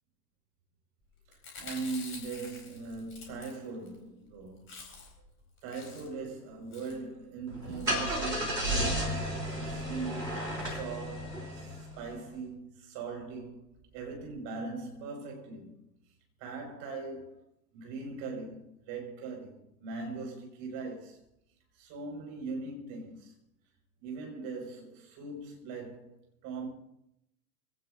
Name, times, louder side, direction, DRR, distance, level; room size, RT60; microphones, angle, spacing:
Chewing mastication, 1.3-4.0 4.3-4.4 4.6-5.3 5.6-6.3 6.7-7.0 7.7-8.0 8.6-8.8 9.2-9.3 9.5-9.6, left 4 dB, 25° left, 4.2 m, -48 dB
voice 1, 1.3-4.8 5.6-13.6 13.9-15.7 16.4-17.4 17.7-21.2 21.7-23.3 24.0-26.2 26.4-26.7, right 4 dB, 35° right, 5.7 m, -40 dB
Car / Engine starting, 7.5-12.1, equal, 85° right, 3.7 m, -33 dB
24.5 x 17.5 x 2.7 m
figure-of-eight pair, 95°, 48 cm